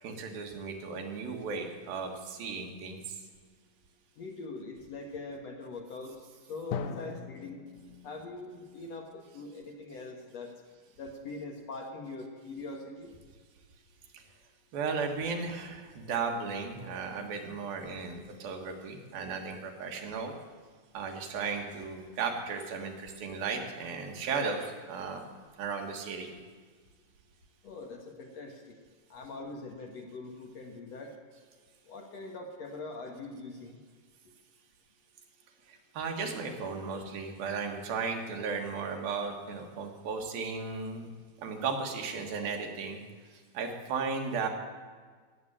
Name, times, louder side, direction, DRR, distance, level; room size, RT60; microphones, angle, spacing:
voice 1, 0.0-3.2 14.7-20.3 20.9-25.2 25.6-26.3 35.7-41.1 41.4-43.0 43.5-44.5, right 5 dB, 75° right, 3 dB, 3.3 m, -35 dB
voice 2, 4.2-7.6 8.0-10.5 11.0-13.1 27.6-28.8 29.1-31.1 31.9-33.8, left 3 dB, 55° left, 2 dB, 2.1 m, -42 dB
Drum, 6.7-10.4, left 6 dB, 70° left, 2.0 m, -42 dB
16.5 x 7.6 x 10.0 m, 1.5 s
omnidirectional pair, 4.2 m